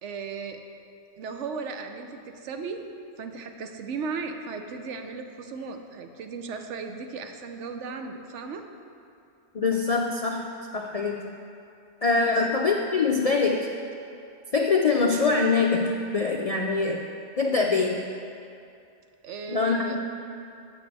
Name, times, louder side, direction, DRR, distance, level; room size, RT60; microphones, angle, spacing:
voice 1, 0.0-0.6 1.2-2.8 3.2-8.6 12.2-12.4 19.2-20.0, right 5 dB, 85° right, 6 dB, 1.0 m, -36 dB
voice 2, 9.5-11.4 12.0-13.7 14.5-17.1 17.4-18.0 19.5-20.0, left 4 dB, 60° left, 1 dB, 0.4 m, -24 dB
12.0 x 8.1 x 3.4 m, 2.6 s
omnidirectional pair, 1.2 m